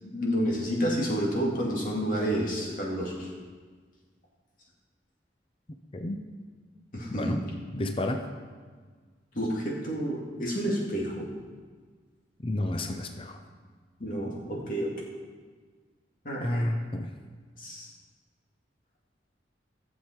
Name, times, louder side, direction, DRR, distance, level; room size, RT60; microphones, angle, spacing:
voice 1, 0.0-3.3 6.9-7.3 9.3-11.3 14.0-14.9 16.2-16.7 17.6-17.9, equal, 45° left, -3 dB, 2.4 m, -30 dB
voice 2, 5.9-6.2 7.1-7.4 7.7-8.3 12.4-13.4 16.4-17.1, left 1 dB, 30° left, 6 dB, 0.6 m, -31 dB
15.0 x 7.3 x 4.5 m, 1.5 s
head